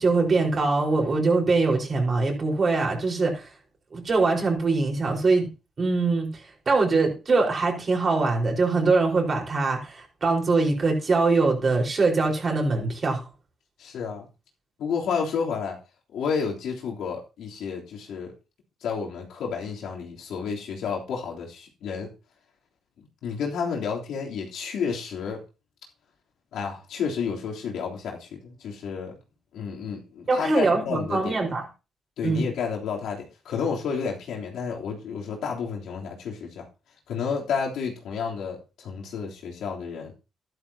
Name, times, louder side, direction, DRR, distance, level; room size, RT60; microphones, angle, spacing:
voice 1, 0.0-3.5 3.9-5.5 5.8-6.3 6.7-13.3 30.3-31.6 32.2-32.5, right 3 dB, 40° right, 2 dB, 4.5 m, -23 dB
voice 2, 13.8-14.3 14.8-15.8 16.1-18.3 18.8-22.1 23.2-25.4 26.5-29.1 29.5-31.4 32.2-36.7 37.1-40.1, left 6 dB, 75° left, -1 dB, 3.2 m, -31 dB
12.5 x 11.5 x 2.8 m, 0.30 s
cardioid pair, 90°, 0 cm